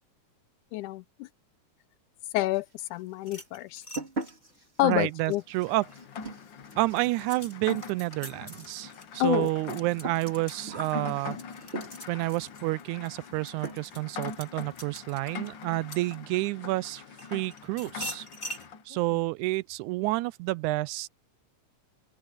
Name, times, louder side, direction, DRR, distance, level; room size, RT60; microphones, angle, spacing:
voice 1, 0.7-1.3 2.3-3.8 4.8-5.4 9.2-9.5, left 18 dB, 85° left, 2.1 m, -28 dB
sound 1, 2.5-3.1 3.4-12.3 13.2-13.4 13.6-14.1 14.4-14.5 14.9-15.0 15.2-15.4 15.7-16.2, right 2 dB, 20° right, 2.5 m, -42 dB
forks being raddled, 3.2-6.0 6.5-16.6 17.2-18.7, left 1 dB, 25° left, 6.1 m, -45 dB
voice 2, 4.8-5.9 6.8-11.4 12.1-17.0 17.3-18.3 18.9-21.1, right 20 dB, 80° right, 2.0 m, -29 dB
Rain, 5.5-18.8, left 6 dB, 60° left, 1.3 m, -43 dB
omnidirectional pair, 3.5 m